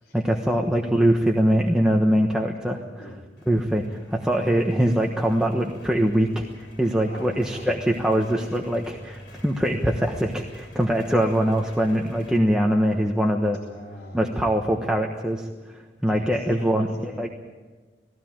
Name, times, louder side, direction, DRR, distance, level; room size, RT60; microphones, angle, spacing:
voice 1, 0.1-3.2 3.5-13.6 14.1-17.3, equal, 5° right, 0 dB, 1.2 m, -23 dB
sound 1, 3.4-12.4, equal, 75° left, 4.3 m, -45 dB
voice 2, 7.1-7.8 13.6-14.8 16.1-17.3, left 1 dB, 55° left, -4 dB, 3.7 m, -41 dB
20.0 x 16.0 x 8.9 m, 1.3 s
head